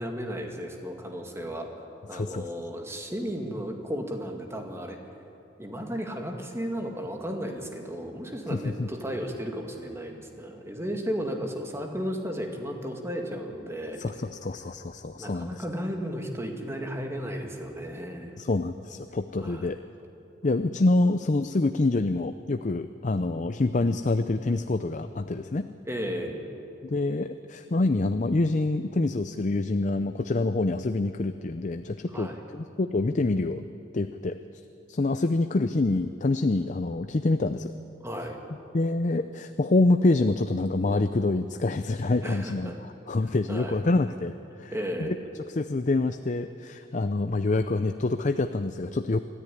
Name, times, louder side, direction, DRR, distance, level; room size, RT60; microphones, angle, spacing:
voice 1, 0.0-1.7 2.1-5.0 5.6-14.0 15.1-18.3 19.4-19.7 25.9-26.4 32.1-32.4 38.0-38.4 42.2-42.8 43.5-43.8 44.7-45.2, equal, 15° right, 3 dB, 2.1 m, -34 dB
voice 2, 2.1-2.5 8.5-8.9 14.0-15.6 18.4-19.8 20.4-25.7 26.8-33.6 33.9-34.4 34.9-37.7 38.7-44.7 45.0-45.1 45.6-49.2, left 2 dB, 40° left, 10 dB, 0.5 m, -26 dB
23.5 x 14.0 x 9.9 m, 2.8 s
head